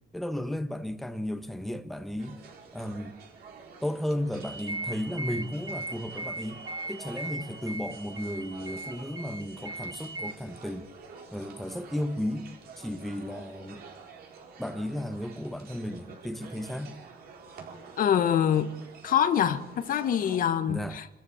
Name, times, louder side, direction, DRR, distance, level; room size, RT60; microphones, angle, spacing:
voice 1, 0.1-2.4 2.7-3.2 3.8-6.6 6.9-10.9 11.3-12.5 12.8-13.8 14.6-17.0 20.7-21.0, left 1 dB, ahead, 1.1 m, -34 dB
sound 1, 2.2-20.5, right 5 dB, 65° right, 4.3 m, -49 dB
sound 2, 4.4-10.3, right 2 dB, 20° right, 1.0 m, -39 dB
voice 2, 18.0-18.8 19.0-21.1, left 9 dB, 55° left, 1.3 m, -25 dB
27.0 x 13.5 x 7.1 m
cardioid pair, 110°, 17 cm